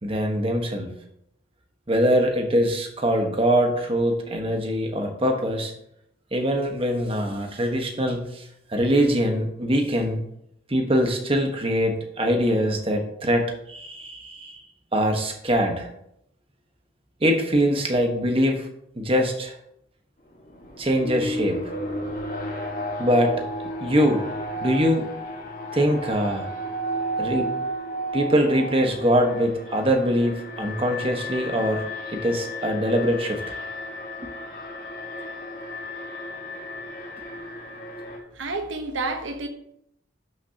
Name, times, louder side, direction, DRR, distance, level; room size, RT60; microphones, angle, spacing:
voice 1, 0.0-0.9 1.9-5.7 6.3-8.4 8.7-10.2 10.7-14.6 14.9-15.9 17.2-18.7 19.0-19.5 20.8-21.6 23.0-23.4 23.8-24.2 24.6-25.1 25.7-26.5 27.2-27.5 28.1-33.5 34.2-34.3, equal, 30° right, 3 dB, 1.4 m, -23 dB
Alarm, 20.3-38.2, equal, 45° left, 1.8 m, -33 dB
voice 2, 38.3-39.5, right 3 dB, 80° right, 5 dB, 1.1 m, -29 dB
12.0 x 6.4 x 2.9 m, 0.75 s
head